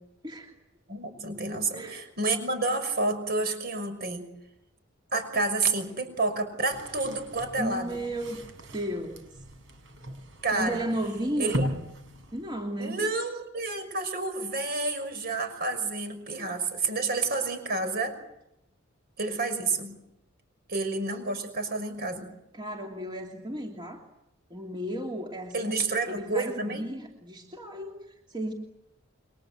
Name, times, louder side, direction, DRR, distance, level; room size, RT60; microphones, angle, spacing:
voice 1, 0.9-4.3 5.1-8.0 10.4-10.8 11.4-11.7 12.8-18.2 19.2-20.0 20.7-22.3 25.5-26.9, right 3 dB, 50° right, 8 dB, 6.1 m, -29 dB
sound 1, 6.7-12.9, equal, 70° right, 5.5 m, -38 dB
voice 2, 7.6-8.4 8.7-9.3 10.5-11.7 12.3-13.0 22.5-24.0 24.5-25.8 26.1-28.5, right 1 dB, 25° right, 0 dB, 3.0 m, -34 dB
29.5 x 23.5 x 8.0 m, 0.84 s
head